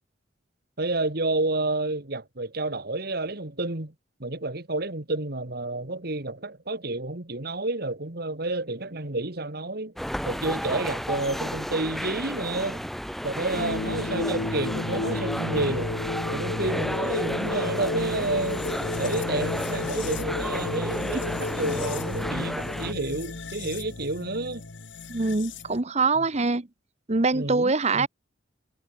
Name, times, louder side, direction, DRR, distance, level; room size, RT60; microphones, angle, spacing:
voice 1, 0.8-3.9 4.2-9.9 10.3-12.9 13.2-16.0 16.3-18.7 19.0-24.6 26.2-26.3 27.3-28.1, right 2 dB, 55° right, 2.0 m, -30 dB
sound 1, 10.0-22.9, equal, ahead, 1.7 m, -32 dB
sound 2, 13.5-25.8, left 2 dB, 70° left, 1.2 m, -32 dB
voice 2, 25.1-26.7 27.1-28.1, right 3 dB, 35° right, 1.1 m, -24 dB
head